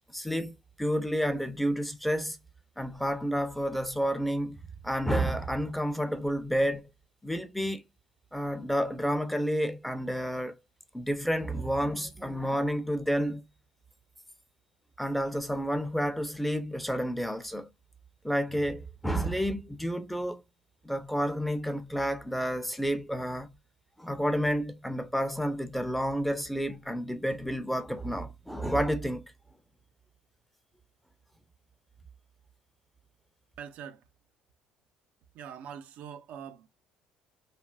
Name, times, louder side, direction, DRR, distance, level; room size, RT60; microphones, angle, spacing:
voice 1, 0.1-2.4 2.8-4.6 4.8-6.9 7.2-7.8 8.3-10.5 10.9-13.4 15.0-17.7 18.2-20.4 20.8-23.5 24.0-29.2, equal, 5° left, 0.6 m, -30 dB
voice 2, 33.6-34.0 35.3-36.7, right 8 dB, 70° right, 0.5 m, -43 dB
3.2 x 2.4 x 2.3 m
supercardioid pair, 85°, 3 cm